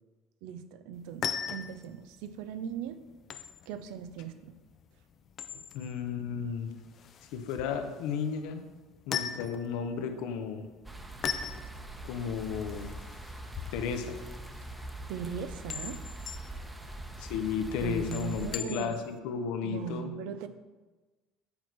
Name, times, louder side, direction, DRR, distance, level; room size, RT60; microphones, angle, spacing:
voice 1, 0.4-3.0 3.7-4.6 5.5-5.7 15.1-16.7 17.8-19.0 19.6-20.5, right 8 dB, 75° right, 11 dB, 0.5 m, -39 dB
sound 1, 0.9-19.2, left 8 dB, 50° left, 0.5 m, -41 dB
voice 2, 5.7-6.7 7.3-8.6 9.1-10.7 12.0-12.9 13.7-14.2 17.2-20.1, left 6 dB, 75° left, 7 dB, 0.8 m, -33 dB
sound 2, 10.8-18.6, right 1 dB, 10° right, 0.9 m, -43 dB
8.7 x 4.5 x 4.6 m, 1.2 s
supercardioid pair, 85°, 0 cm